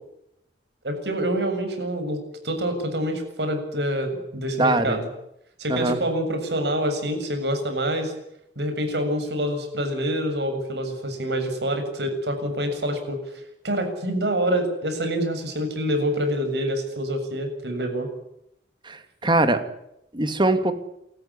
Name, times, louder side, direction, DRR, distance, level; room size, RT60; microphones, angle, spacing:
voice 1, 0.8-5.1 5.6-8.1 8.6-13.2 13.6-18.1, equal, 70° right, 6 dB, 7.2 m, -26 dB
voice 2, 4.6-5.0 5.7-6.0 18.9-19.0 19.2-19.6 20.1-20.7, right 2 dB, 25° right, 9 dB, 2.5 m, -21 dB
29.0 x 14.5 x 9.9 m, 0.79 s
head